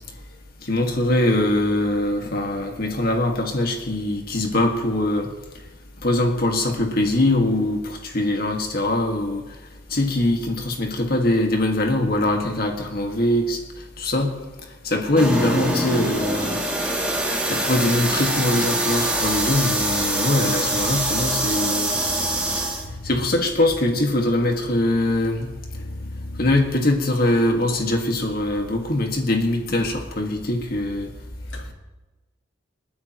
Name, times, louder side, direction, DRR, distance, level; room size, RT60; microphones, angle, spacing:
voice 1, 0.6-5.3 6.0-9.4 9.9-13.6 14.0-14.3 14.8-16.6 17.5-22.0 23.0-25.5 26.4-31.1, left 1 dB, 50° left, 1.8 m, -22 dB
sound 1, 15.2-22.9, right 1 dB, 5° right, 2.5 m, -24 dB
voice 2, 25.7-26.5 31.5-31.7, left 1 dB, 75° left, 1.8 m, -34 dB
28.0 x 9.5 x 3.0 m
head